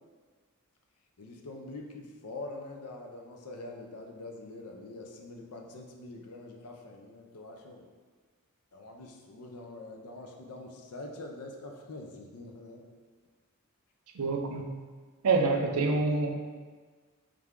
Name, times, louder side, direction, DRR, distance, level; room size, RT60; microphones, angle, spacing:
voice 1, 1.2-7.9 8.7-12.8, left 2 dB, 90° left, 2 dB, 0.6 m, -44 dB
voice 2, 14.2-14.7 15.2-16.3, right 3 dB, 80° right, 4 dB, 0.5 m, -26 dB
3.5 x 3.3 x 3.6 m, 1.5 s
head